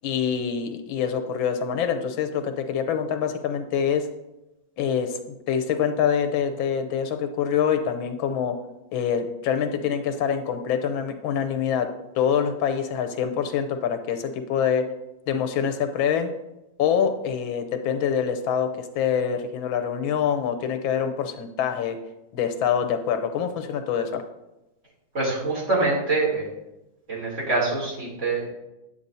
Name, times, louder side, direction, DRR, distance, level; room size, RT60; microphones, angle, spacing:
voice 1, 0.0-4.1 4.8-8.6 8.9-11.9 12.1-14.9 15.3-16.3 16.8-22.0 22.3-24.2, left 8 dB, 90° left, 8 dB, 1.5 m, -25 dB
voice 2, 25.1-26.5 27.1-28.5, right 3 dB, 35° right, -4 dB, 3.0 m, -25 dB
8.8 x 8.6 x 2.7 m, 0.93 s
omnidirectional pair, 2.1 m